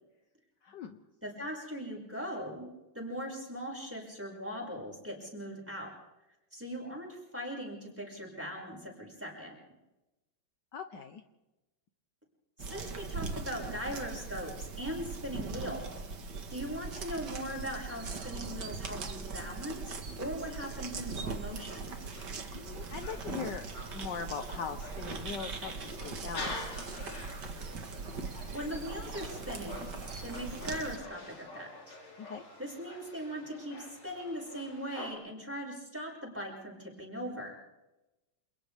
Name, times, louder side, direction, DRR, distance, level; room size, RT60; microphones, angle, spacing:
voice 1, 0.6-1.0 10.7-11.2 22.5-23.6 23.9-27.1 32.2-32.4, left 6 dB, 65° left, 7 dB, 1.5 m, -41 dB
voice 2, 1.2-2.7 2.9-5.9 6.5-9.6 12.7-15.9 16.5-21.9 28.5-29.9 30.2-32.0 32.6-37.5, equal, 5° right, -2 dB, 6.1 m, -40 dB
sound 1, 12.6-31.0, right 4 dB, 55° right, 2.3 m, -40 dB
sound 2, 21.7-35.1, left 2 dB, 90° left, 4.6 m, -47 dB
29.5 x 28.0 x 3.6 m, 1.0 s
omnidirectional pair, 2.2 m